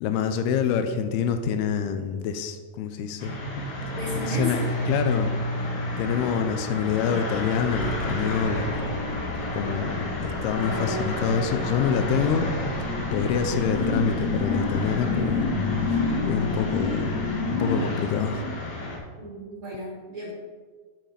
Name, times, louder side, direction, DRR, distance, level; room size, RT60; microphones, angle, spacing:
voice 1, 0.0-3.7 4.3-4.6 4.9-8.7 9.5-12.5 12.9-15.5 16.2-17.2 17.5-18.4, left 7 dB, 85° left, 8 dB, 2.3 m, -26 dB
sound 1, 3.2-19.0, left 1 dB, 55° left, 2.4 m, -31 dB
voice 2, 3.9-4.7 19.2-20.3, left 1 dB, 50° right, -5 dB, 1.6 m, -34 dB
sound 2, 7.7-15.5, right 2 dB, 80° right, 3.2 m, -40 dB
sound 3, 12.1-18.8, left 3 dB, 40° left, 1.1 m, -29 dB
9.1 x 4.7 x 4.9 m, 1.5 s
omnidirectional pair, 4.9 m